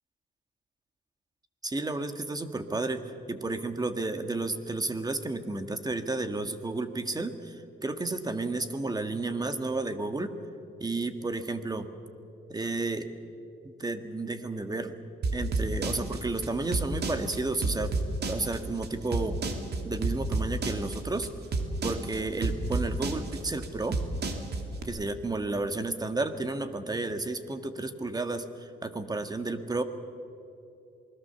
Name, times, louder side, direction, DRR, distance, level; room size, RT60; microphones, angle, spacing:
voice 1, 1.6-10.4 10.8-11.9 12.5-13.1 13.6-15.0 15.3-18.0 18.3-19.4 19.8-21.3 21.8-24.0 24.8-29.8, right 2 dB, 20° right, 9 dB, 1.8 m, -32 dB
sound 1, 15.2-24.8, right 3 dB, 55° right, 2.7 m, -30 dB
27.5 x 20.5 x 7.0 m, 2.7 s
cardioid pair, 90°, 20 cm